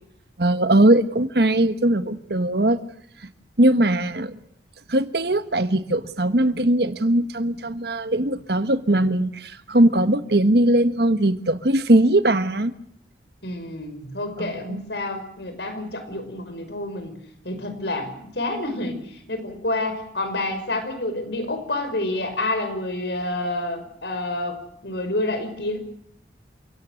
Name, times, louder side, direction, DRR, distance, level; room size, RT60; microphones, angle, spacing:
voice 1, 0.4-2.8 3.6-4.4 4.9-12.7 14.4-14.8, right 1 dB, 65° right, 12 dB, 1.5 m, -20 dB
voice 2, 13.4-17.2 17.4-25.8, left 2 dB, 70° left, 8 dB, 5.5 m, -28 dB
29.5 x 17.5 x 6.5 m, 0.70 s
head